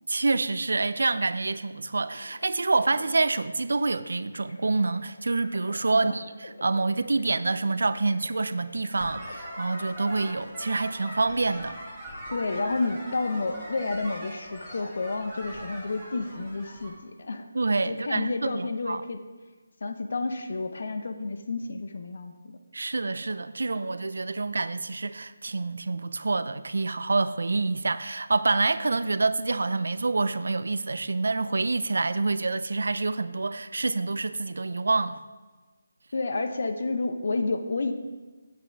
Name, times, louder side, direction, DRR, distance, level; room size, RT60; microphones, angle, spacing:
voice 1, 0.1-11.8 17.5-19.0 22.7-35.2, right 3 dB, 70° right, 0.4 m, -27 dB
sound 1, 1.9-12.4, left 2 dB, 65° left, 1.2 m, -50 dB
sound 2, 9.0-16.9, equal, ahead, 1.8 m, -41 dB
voice 2, 12.3-17.4 17.9-19.2 19.8-22.6 36.1-37.9, left 3 dB, 50° left, 0.8 m, -30 dB
8.3 x 7.8 x 4.6 m
hypercardioid pair, 175°, 0 cm